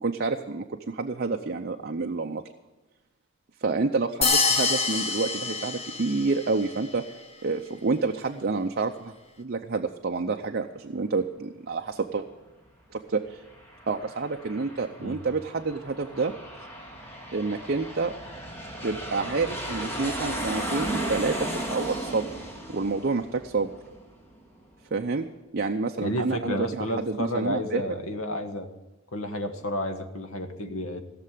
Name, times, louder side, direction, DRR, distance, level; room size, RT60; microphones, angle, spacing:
voice 1, 0.0-2.4 3.6-12.3 12.9-13.4 13.9-16.3 17.3-18.1 18.8-22.3 22.7-23.7 24.9-25.3 25.5-27.8, right 4 dB, 50° right, 4 dB, 0.6 m, -28 dB
sound 1, 4.2-6.5, left 4 dB, 30° left, 1.1 m, -26 dB
Aircraft, 13.3-24.4, right 1 dB, 10° left, 2.4 m, -35 dB
voice 2, 26.0-28.7 29.1-31.0, left 1 dB, 85° left, 6 dB, 1.5 m, -31 dB
16.5 x 6.7 x 9.2 m, 1.1 s
head